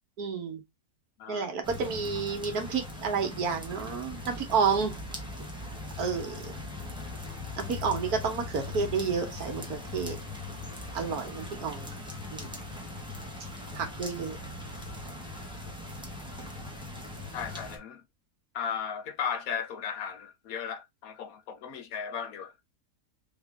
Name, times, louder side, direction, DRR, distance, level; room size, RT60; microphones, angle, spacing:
voice 1, 0.2-0.6 1.3-4.9 6.0-6.6 7.6-10.2 10.9-12.0 12.3-12.5 13.7-14.4, right 5 dB, 70° right, 1.5 m, -30 dB
sound 1, 1.6-17.8, left 2 dB, 5° right, 0.8 m, -40 dB
voice 2, 17.3-18.0 18.5-22.5, left 7 dB, 70° left, 1.0 m, -35 dB
3.6 x 3.1 x 3.4 m
omnidirectional pair, 1.7 m